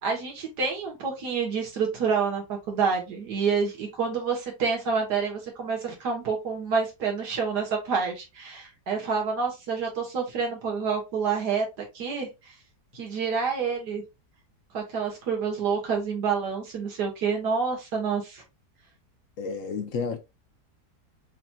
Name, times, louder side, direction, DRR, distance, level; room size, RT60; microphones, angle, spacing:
voice 1, 0.0-12.5 12.9-14.0 14.7-18.4, right 5 dB, 80° right, 1.9 m, -28 dB
voice 2, 19.4-20.2, left 5 dB, 60° left, 1.0 m, -31 dB
5.8 x 2.8 x 2.3 m
omnidirectional pair, 1.8 m